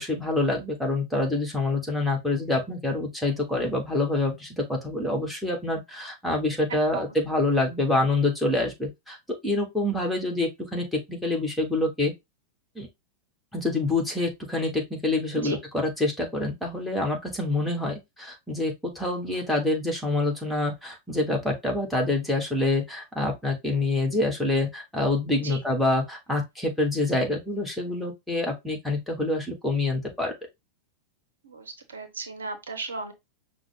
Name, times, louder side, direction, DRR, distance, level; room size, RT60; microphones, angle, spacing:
voice 1, 0.0-9.2 9.4-12.1 12.8-12.9 13.5-30.3, left 2 dB, 5° left, 1.3 m, -26 dB
voice 2, 31.4-33.1, right 4 dB, 70° right, 0.8 m, -35 dB
5.6 x 2.0 x 3.6 m
figure-of-eight pair, 90°, 0 cm